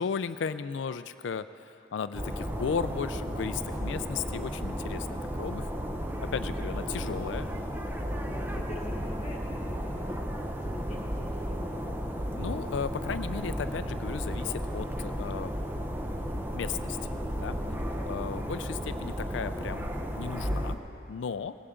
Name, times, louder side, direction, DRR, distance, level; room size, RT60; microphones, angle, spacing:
voice 1, 0.0-5.7 6.3-7.5 12.3-15.5 16.5-17.1 17.4-17.6 18.0-20.8 21.1-21.6, left 6 dB, 75° left, 12 dB, 0.4 m, -35 dB
sound 1, 2.1-20.8, equal, 10° right, 0.8 m, -34 dB
voice 2, 6.3-6.6 8.2-12.1 17.6-17.9, left 1 dB, 35° left, -1 dB, 1.4 m, -46 dB
18.0 x 16.5 x 3.7 m, 2.8 s
head